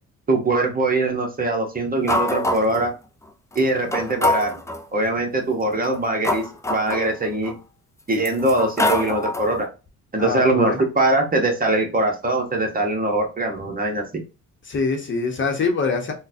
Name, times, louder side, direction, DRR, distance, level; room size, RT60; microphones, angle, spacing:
voice 1, 0.3-2.9 3.5-4.6 4.9-6.4 6.7-7.6 8.1-9.7 10.1-14.0, right 2 dB, 30° right, 3 dB, 0.9 m, -22 dB
sound 1, 2.1-2.9 3.5-3.6 3.9-4.8 5.7-7.5 8.1-9.6, left 1 dB, 10° left, 0.4 m, -25 dB
voice 2, 10.2-10.8 14.6-16.1, left 4 dB, 40° left, 3 dB, 0.9 m, -24 dB
3.8 x 2.2 x 2.6 m, 0.31 s
cardioid pair, 90°, 30 cm